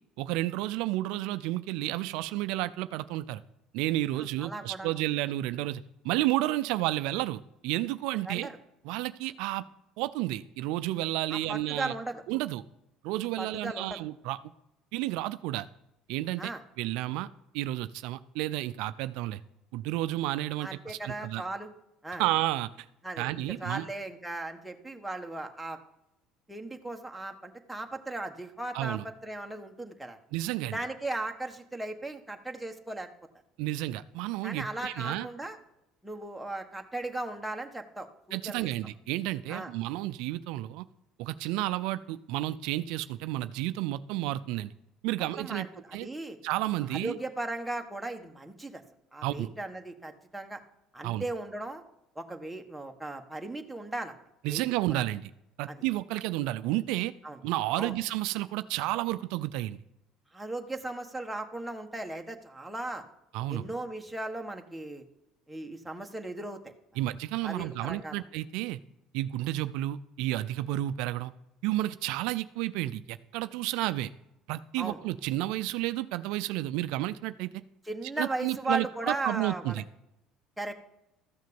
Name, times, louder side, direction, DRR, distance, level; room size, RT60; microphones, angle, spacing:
voice 1, 0.2-3.4 3.7-8.5 8.8-9.6 10.0-11.9 12.3-12.6 13.0-14.4 14.9-15.7 16.1-16.5 16.8-17.3 17.5-19.4 19.7-21.4 22.2-22.7 23.2-23.9 28.7-29.0 30.3-30.8 33.6-35.3 38.3-40.8 41.2-44.7 45.0-45.7 45.9-46.1 46.4-47.2 49.2-49.5 51.0-51.2 54.4-55.3 55.6-57.1 57.4-59.8 63.3-63.6 67.0-68.8 69.1-71.3 71.6-74.1 74.5-77.6 78.2-79.8, right 16 dB, 75° right, 13 dB, 0.4 m, -31 dB
voice 2, 4.1-5.0 8.2-8.6 11.3-12.2 13.4-14.0 16.4-16.6 20.6-21.7 22.0-22.2 23.0-25.8 26.5-30.2 30.7-33.1 34.4-35.6 36.0-38.7 39.5-39.7 45.4-46.4 46.9-48.8 49.1-50.6 50.9-51.8 52.1-54.1 54.5-54.6 55.7-55.8 57.2-57.4 57.8-58.0 60.3-63.0 63.5-65.0 65.5-66.6 67.4-68.2 74.8-75.0 77.8-79.8 80.6-80.7, right 2 dB, 5° right, 3 dB, 1.4 m, -37 dB
13.5 x 6.4 x 7.0 m, 0.87 s
supercardioid pair, 85°, 0 cm